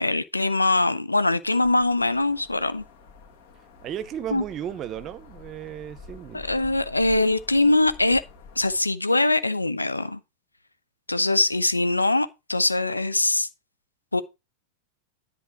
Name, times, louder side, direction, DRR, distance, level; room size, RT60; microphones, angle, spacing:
voice 1, 0.0-2.8 4.3-4.4 6.3-8.2 8.6-10.2 11.1-13.5 14.1-14.2, left 2 dB, 85° left, 0.7 m, -22 dB
sound 1, 1.4-8.8, left 4 dB, 50° left, 2.2 m, -47 dB
voice 2, 3.8-6.4, right 10 dB, 30° right, 0.8 m, -34 dB
10.5 x 4.3 x 5.9 m
figure-of-eight pair, 90°, 0 cm